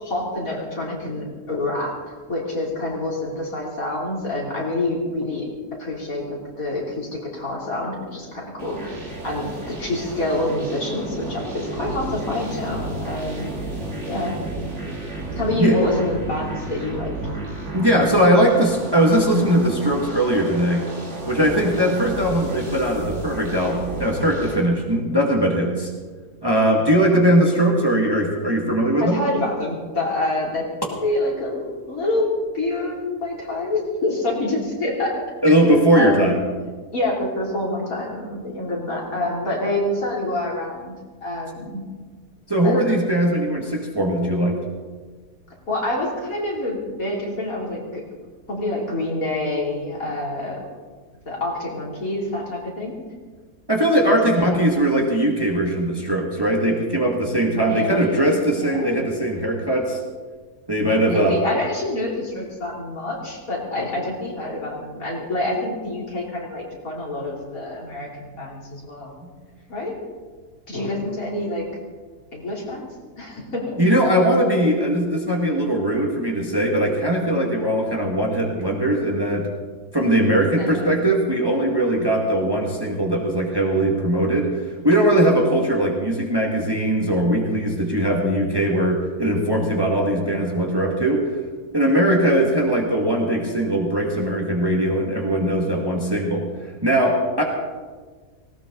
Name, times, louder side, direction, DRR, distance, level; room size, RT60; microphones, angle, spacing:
voice 1, 0.0-2.0 2.3-5.5 5.8-13.5 14.1-14.4 15.4-17.1 21.8-21.9 22.3-22.4 27.1-27.3 29.0-30.7 31.0-32.3 32.5-35.2 35.9-36.3 36.9-40.9 41.2-41.8 42.6-42.8 45.7-48.0 48.5-50.6 51.3-53.0 54.1-54.9 57.5-59.0 61.1-69.1 69.7-69.9 70.7-71.7 72.3-72.9 73.2-73.8 80.6-80.9, left 2 dB, 60° left, -3 dB, 3.9 m, -27 dB
sound 1, 8.6-24.6, right 2 dB, 45° right, 2.6 m, -32 dB
voice 2, 17.7-20.9 21.3-25.9 26.4-29.2 35.4-36.4 42.5-44.6 53.7-60.0 60.7-61.4 73.8-79.5 79.9-91.3 91.7-96.5 96.8-97.4, right 1 dB, 15° right, -1 dB, 2.0 m, -20 dB
18.5 x 18.0 x 4.0 m, 1.4 s
omnidirectional pair, 1.7 m